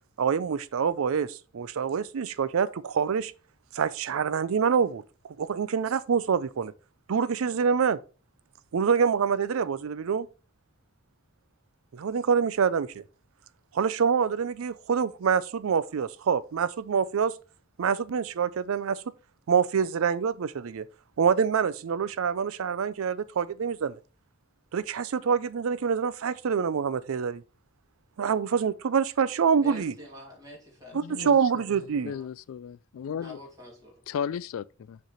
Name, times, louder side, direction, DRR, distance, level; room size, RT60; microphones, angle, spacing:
voice 1, 0.2-3.3 3.7-5.0 5.4-6.7 7.1-8.0 8.7-10.3 11.9-13.0 13.7-17.4 17.8-19.0 19.5-20.9 21.2-24.0 24.7-27.4 28.2-29.9 30.9-32.1, right 6 dB, 85° right, 0.4 m, -26 dB
voice 2, 29.6-32.3 33.2-34.0, left 1 dB, 20° right, 2.4 m, -47 dB
voice 3, 30.9-31.6 32.0-33.4 34.1-35.0, left 7 dB, 75° left, 0.3 m, -35 dB
6.5 x 3.2 x 5.6 m
head